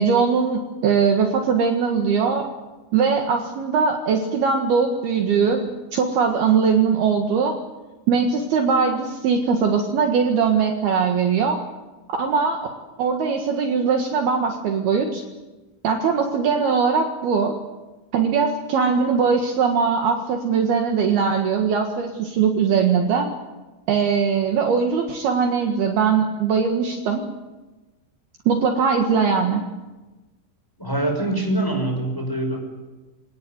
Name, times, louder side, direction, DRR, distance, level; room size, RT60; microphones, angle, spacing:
voice 1, 0.0-2.5 2.9-7.6 8.1-11.6 12.2-12.6 13.0-15.2 15.8-17.6 18.1-23.3 23.9-27.2 28.5-29.6, right 6 dB, 60° right, 3 dB, 3.3 m, -20 dB
voice 2, 30.8-32.6, right 1 dB, 5° left, 2 dB, 5.7 m, -24 dB
26.5 x 18.5 x 9.5 m, 1.1 s
omnidirectional pair, 5.5 m